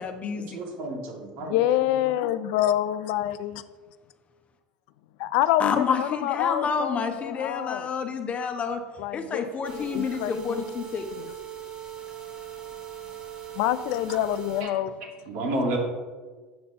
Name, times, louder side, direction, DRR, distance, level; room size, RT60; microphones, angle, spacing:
voice 1, 0.0-0.6 5.6-8.8 9.1-11.1, left 5 dB, 35° left, 7 dB, 0.9 m, -29 dB
voice 2, 0.5-1.6 14.6-14.7 15.3-15.8, right 1 dB, 65° right, -1 dB, 2.3 m, -30 dB
voice 3, 1.4-3.6 5.2-7.9 9.0-10.6 11.2-11.3 13.6-15.1, left 13 dB, 70° left, 14 dB, 0.4 m, -27 dB
sound 1, 9.6-14.6, right 10 dB, 25° right, 1.6 m, -40 dB
7.7 x 5.3 x 4.3 m, 1.4 s
hypercardioid pair, 85°, 4 cm